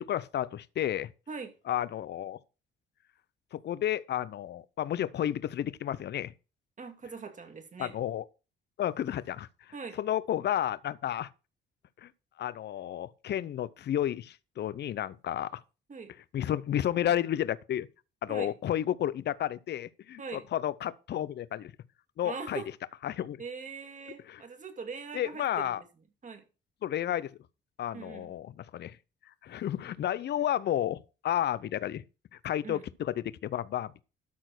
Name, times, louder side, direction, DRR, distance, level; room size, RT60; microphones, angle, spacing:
voice 1, 0.0-1.1 1.7-2.4 3.5-6.3 7.8-8.2 8.8-9.5 10.0-11.3 12.0-12.1 12.4-15.6 16.3-17.9 18.2-21.7 22.2-22.6 23.0-23.4 24.3-24.4 25.1-25.8 26.8-27.3 27.8-29.0 29.4-32.0 32.4-34.0, left 11 dB, 60° left, 0.7 m, -31 dB
voice 2, 6.8-7.9 9.7-10.0 15.9-16.1 18.3-18.5 20.2-20.5 22.2-22.7 23.4-25.9 26.2-26.4 27.9-28.3 32.6-32.8, right 5 dB, 40° right, 2.4 m, -41 dB
12.5 x 4.4 x 6.0 m
cardioid pair, 90°, 20 cm